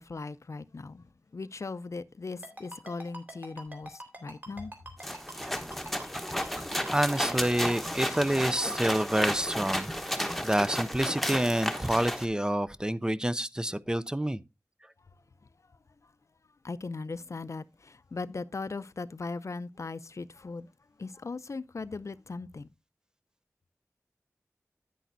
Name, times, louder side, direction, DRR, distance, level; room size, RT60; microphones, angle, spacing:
voice 1, 0.0-4.7 16.0-16.1 16.6-20.7 21.0-22.7, left 3 dB, 60° left, 0.5 m, -39 dB
Ringtone, 2.4-9.2, right 1 dB, 30° right, 3.4 m, -43 dB
sound 1, 5.0-12.3, equal, 5° left, 1.1 m, -33 dB
voice 2, 6.9-10.2 10.4-14.4, right 1 dB, 15° right, 0.5 m, -28 dB
10.0 x 9.3 x 2.6 m
wide cardioid pair, 75°, 6 cm